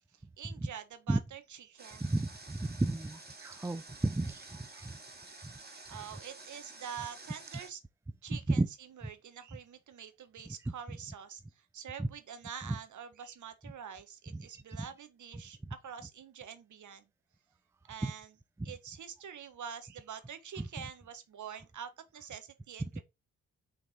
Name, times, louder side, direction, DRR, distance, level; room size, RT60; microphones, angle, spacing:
voice 1, 0.4-2.1 5.9-7.8 8.2-17.1 17.9-18.4 18.6-23.0, right 8 dB, 50° right, 1.4 m, -46 dB
Water, 1.8-7.7, right 3 dB, 25° right, 2.6 m, -51 dB
voice 2, 2.0-4.4 8.6-8.7, right 2 dB, 5° right, 0.5 m, -32 dB
6.1 x 4.0 x 4.4 m
hypercardioid pair, 45°, 38 cm